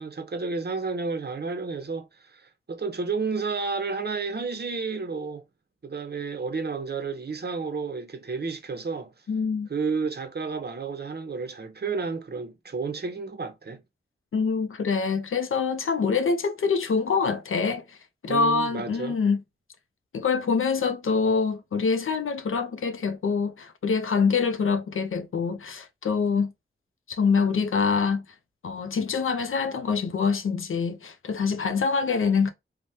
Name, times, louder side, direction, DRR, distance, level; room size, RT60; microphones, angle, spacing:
voice 1, 0.0-5.4 5.8-9.1 9.7-13.8 18.3-19.2, right 4 dB, 50° right, 0.6 m, -31 dB
voice 2, 9.3-9.7 14.3-18.0 18.2-19.4 20.1-26.5 27.1-28.2 28.6-32.5, left 5 dB, 80° left, 0.4 m, -25 dB
3.2 x 2.1 x 2.6 m
wide cardioid pair, 80°, 21 cm